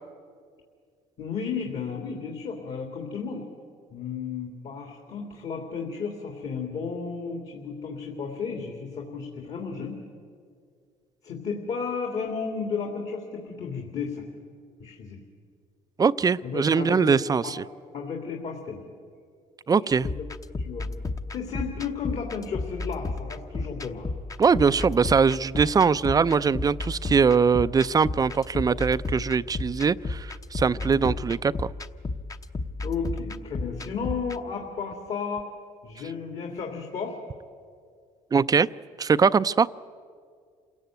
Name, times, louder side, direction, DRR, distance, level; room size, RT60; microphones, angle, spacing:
voice 1, 1.2-3.4 3.9-10.0 11.2-14.2 14.8-15.2 16.4-17.5 17.9-18.8 19.8-19.9 20.6-20.9 21.3-24.1 30.7-31.0 32.8-35.5 35.8-37.2, left 5 dB, 55° left, 2 dB, 3.0 m, -33 dB
voice 2, 16.0-17.6 19.7-20.1 24.4-31.7 38.3-38.7 39.0-39.7, right 5 dB, 25° right, 16 dB, 0.5 m, -22 dB
sound 1, 20.0-34.4, left 3 dB, 25° left, 1.0 m, -34 dB
27.5 x 17.0 x 9.3 m, 2.1 s
cardioid pair, 95°, 14 cm